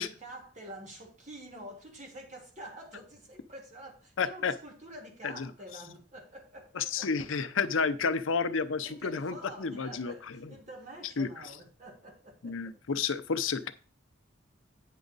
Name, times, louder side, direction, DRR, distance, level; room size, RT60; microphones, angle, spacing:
voice 1, 0.0-7.1 8.8-12.8, right 1 dB, 35° right, 2.0 m, -47 dB
voice 2, 4.2-4.5 5.2-5.5 6.7-10.5 11.2-11.3 12.4-13.7, left 5 dB, 85° left, 0.6 m, -31 dB
9.2 x 6.1 x 4.0 m
head